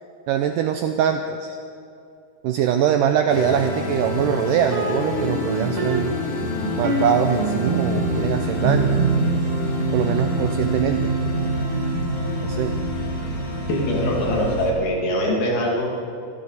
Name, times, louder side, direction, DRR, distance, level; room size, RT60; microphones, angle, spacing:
voice 1, 0.3-1.6 2.4-6.2 6.8-9.0 9.9-11.1 12.4-12.8, right 8 dB, 90° right, 6 dB, 1.9 m, -22 dB
sound 1, 3.3-14.7, equal, 40° left, 2.5 m, -28 dB
Smooth Guitar Solo Lick, 4.7-14.5, right 2 dB, 40° right, 2.3 m, -26 dB
voice 2, 13.7-15.9, left 1 dB, 70° left, -2 dB, 4.4 m, -22 dB
24.0 x 14.0 x 4.1 m, 2.5 s
omnidirectional pair, 4.5 m